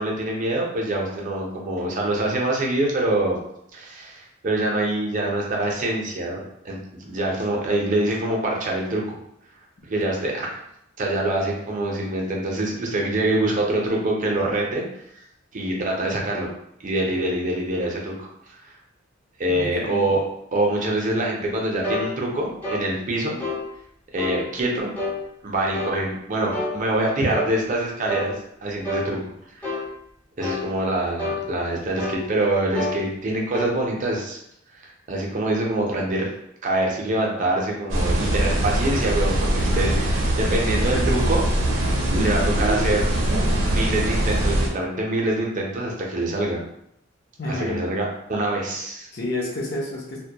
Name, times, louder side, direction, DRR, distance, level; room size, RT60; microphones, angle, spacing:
voice 1, 0.0-3.4 3.7-6.4 6.6-9.2 9.9-10.6 11.0-14.8 15.5-16.5 16.8-18.3 18.6-18.7 19.4-20.2 20.5-23.4 24.1-24.9 25.4-28.4 28.6-29.2 29.6-29.8 30.4-34.4 34.8-36.3 36.6-41.4 42.2-43.1 43.7-46.6 47.5-49.1, right 1 dB, 40° right, -1 dB, 0.5 m, -25 dB
voice 2, 19.5-20.1 47.4-47.8 49.1-50.2, left 1 dB, 55° left, -3 dB, 0.6 m, -30 dB
sound 1, 21.8-22.1 22.6-22.9 23.4-23.6 24.2-24.4 25.0-25.2 25.7-26.0 26.5-26.8 27.3-27.5 28.1-28.3 28.8-29.1 29.6-29.9 30.4-30.7 31.2-31.4 32.0-32.2 32.7-33.0 33.5-33.7, left 1 dB, 10° left, 0.5 m, -28 dB
sound 2, 37.9-44.7, right 1 dB, 90° right, 0.5 m, -22 dB
2.1 x 2.1 x 2.7 m, 0.75 s
head